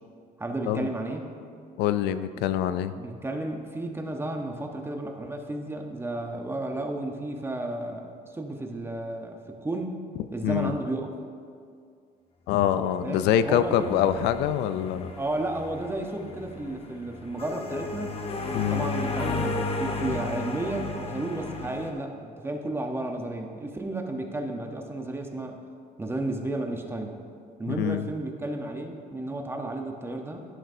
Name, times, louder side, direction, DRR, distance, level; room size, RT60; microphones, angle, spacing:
voice 1, 0.4-1.3 2.3-2.5 3.0-10.0 10.3-11.1 13.0-14.0 15.2-18.2 18.6-25.6 26.0-27.2 27.6-30.5, right 2 dB, 15° right, 3 dB, 0.9 m, -33 dB
voice 2, 1.8-2.9 10.4-10.7 12.5-15.1 18.5-18.9 27.7-28.1, left 10 dB, 85° left, 12 dB, 0.4 m, -25 dB
sound 1, 12.9-21.9, left 3 dB, 35° left, 0.9 m, -34 dB
11.0 x 10.5 x 2.7 m, 2.3 s
cardioid pair, 110°, 17 cm